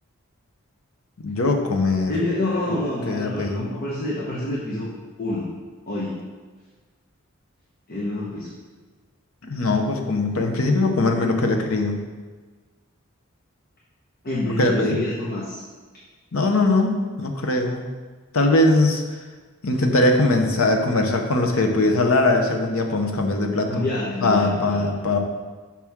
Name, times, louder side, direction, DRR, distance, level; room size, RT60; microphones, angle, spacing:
voice 1, 1.2-2.1 2.7-2.8 3.1-3.7 9.4-12.0 14.6-15.0 16.3-17.9 18.3-19.0 19.6-23.8 24.2-25.2, left 2 dB, 80° left, 3 dB, 0.8 m, -21 dB
voice 2, 2.1-4.9 5.2-5.5 5.9-6.2 7.9-8.5 14.2-15.6 23.7-24.9, left 1 dB, 45° left, -5 dB, 1.1 m, -27 dB
6.0 x 5.8 x 3.6 m, 1.4 s
head